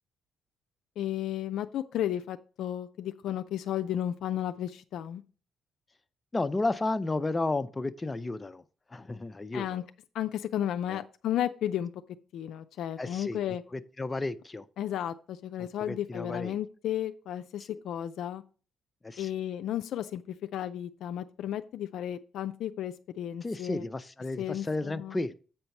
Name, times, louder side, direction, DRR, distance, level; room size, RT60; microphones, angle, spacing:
voice 1, 1.0-5.2 9.5-9.8 10.1-11.9 12.3-13.6 14.8-18.4 19.2-23.8 24.4-25.2, left 11 dB, 80° left, 0.4 m, -33 dB
voice 2, 6.3-8.6 8.9-9.8 10.9-11.0 13.0-14.7 15.6-16.6 17.7-17.8 19.0-19.3 23.4-25.3, left 2 dB, 20° left, 0.5 m, -33 dB
7.9 x 4.5 x 5.3 m
cardioid pair, 90°, 0 cm